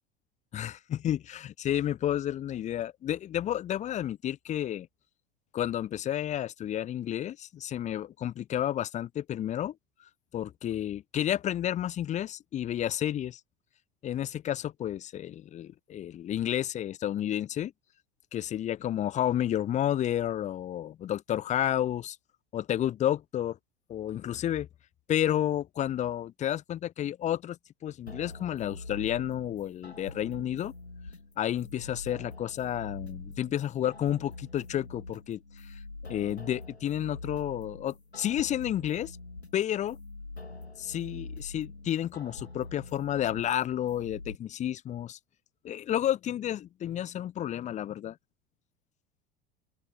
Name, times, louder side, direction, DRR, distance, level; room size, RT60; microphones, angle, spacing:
voice 1, 0.5-4.9 5.5-9.7 10.3-13.4 14.0-17.7 18.3-22.2 22.5-23.6 23.9-24.7 25.1-30.7 31.4-35.4 35.7-35.8 36.1-39.2 39.5-40.0 40.8-45.2 45.6-48.2, left 11 dB, 25° left, 0.6 m, -31 dB
sound 1, 28.1-44.4, left 3 dB, 90° left, 1.7 m, -45 dB
open air
figure-of-eight pair, 75°, 31 cm